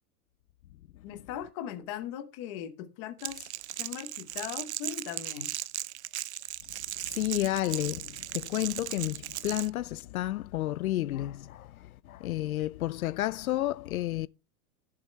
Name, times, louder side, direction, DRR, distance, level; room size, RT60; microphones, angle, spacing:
voice 1, 1.0-3.5 3.8-5.5, left 10 dB, 20° left, 0.8 m, -39 dB
Crackle, 3.2-9.7, right 13 dB, 50° right, 0.5 m, -37 dB
voice 2, 7.0-14.3, left 15 dB, 65° left, 0.6 m, -31 dB
16.5 x 7.5 x 3.1 m
supercardioid pair, 180°, 46 cm